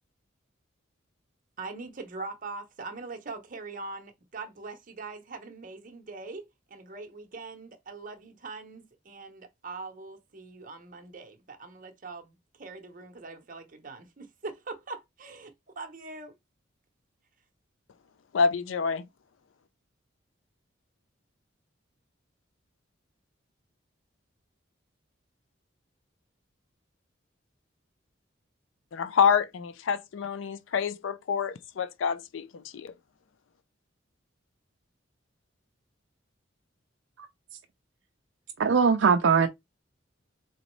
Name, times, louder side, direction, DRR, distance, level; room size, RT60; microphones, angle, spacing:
voice 1, 1.6-6.4 6.7-16.3, right 3 dB, 45° right, 0.8 m, -42 dB
voice 2, 18.3-19.0 28.9-32.5 32.7-32.9, left 6 dB, 80° left, 0.4 m, -27 dB
voice 3, 38.6-39.5, right 5 dB, 65° right, 0.4 m, -20 dB
4.0 x 3.0 x 3.1 m
head